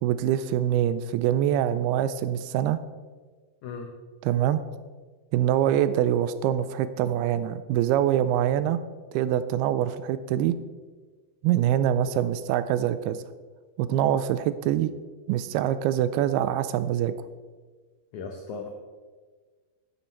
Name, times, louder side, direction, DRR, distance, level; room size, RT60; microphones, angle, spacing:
voice 1, 0.0-2.8 4.2-4.6 5.3-8.8 9.1-10.6 11.4-13.2 13.8-14.9 15.3-17.1, right 11 dB, 85° right, 13 dB, 2.3 m, -24 dB
voice 2, 3.6-3.9 18.1-18.7, left 5 dB, 90° left, 3 dB, 1.6 m, -36 dB
10.0 x 9.5 x 4.5 m, 1.4 s
omnidirectional pair, 4.7 m